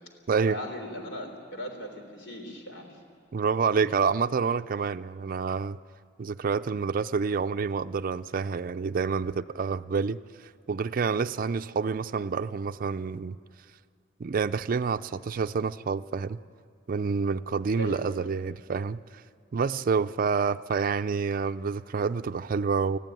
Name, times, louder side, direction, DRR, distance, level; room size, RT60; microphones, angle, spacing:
voice 1, 0.5-3.0 17.8-18.3, equal, 85° left, 3 dB, 3.7 m, -38 dB
voice 2, 3.3-5.8 6.2-10.2 10.7-13.4 14.2-16.4 16.9-19.0 19.5-23.0, right 5 dB, 50° right, 9 dB, 0.4 m, -28 dB
20.0 x 14.5 x 9.3 m, 2.4 s
head